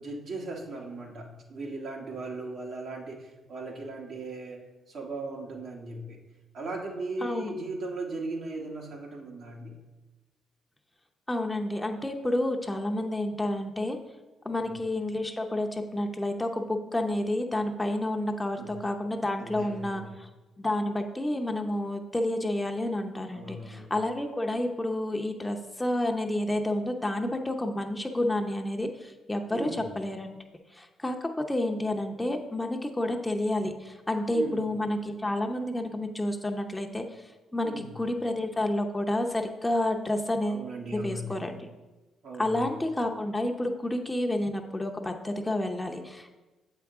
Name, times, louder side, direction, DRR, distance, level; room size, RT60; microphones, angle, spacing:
voice 1, 0.0-6.2 6.5-9.8 14.4-14.7 18.5-18.8 19.4-20.1 23.3-23.9 29.5-29.8 34.3-34.7 37.6-37.9 40.5-41.4 42.2-42.7, right 2 dB, 65° right, -1 dB, 1.3 m, -38 dB
voice 2, 7.2-7.5 11.3-14.0 14.4-20.3 20.6-30.4 30.7-37.0 37.5-40.6 40.9-41.7 42.4-46.4, left 1 dB, 15° left, 3 dB, 0.7 m, -30 dB
7.7 x 4.8 x 3.6 m, 1.2 s
supercardioid pair, 55°, 0 cm